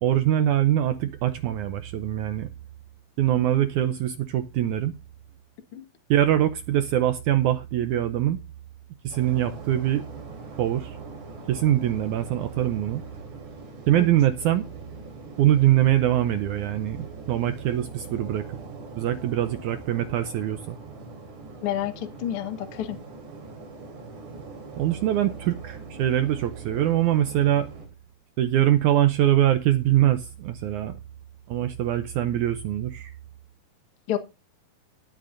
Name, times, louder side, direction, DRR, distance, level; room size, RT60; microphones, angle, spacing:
voice 1, 0.0-2.5 3.2-4.9 6.1-8.4 9.0-10.0 10.6-11.0 11.5-13.0 13.9-14.7 15.4-18.5 18.9-20.8 24.8-27.7 28.4-31.0 31.5-33.1, right 12 dB, 80° right, 1.8 m, -23 dB
sound 1, 9.1-27.9, right 3 dB, 55° right, 4.8 m, -42 dB
voice 2, 21.6-23.0 34.1-34.2, left 11 dB, 55° left, 1.6 m, -29 dB
19.5 x 8.8 x 2.6 m
omnidirectional pair, 4.2 m